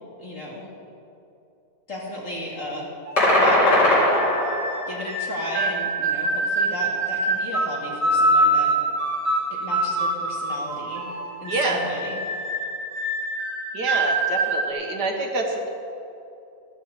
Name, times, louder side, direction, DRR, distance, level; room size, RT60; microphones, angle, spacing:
voice 1, 0.2-0.6 1.9-2.9 3.2-4.0 4.9-8.7 9.5-11.1 11.4-12.1, left 1 dB, 50° left, -5 dB, 3.1 m, -34 dB
sound 1, 3.1-14.7, right 1 dB, 40° right, 1.9 m, -25 dB
sound 2, 3.2-4.9, left 1 dB, 85° left, 4.1 m, -19 dB
voice 2, 11.5-11.8 13.7-15.7, right 2 dB, 75° right, 1 dB, 2.1 m, -26 dB
14.5 x 13.5 x 4.2 m, 2.7 s
omnidirectional pair, 1.8 m